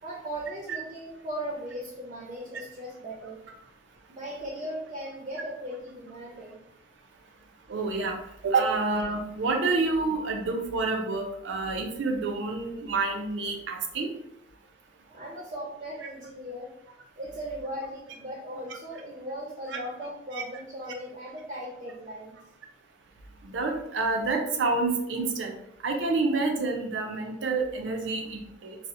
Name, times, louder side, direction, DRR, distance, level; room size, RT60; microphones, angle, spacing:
voice 1, 0.0-3.4 4.1-6.6 15.1-16.7 17.2-22.4, equal, 35° right, -3 dB, 0.6 m, -38 dB
voice 2, 7.7-8.2 8.4-14.1 19.7-19.8 23.4-25.5 25.8-28.8, right 3 dB, 85° right, 3 dB, 0.5 m, -28 dB
4.0 x 2.0 x 2.5 m, 0.80 s
head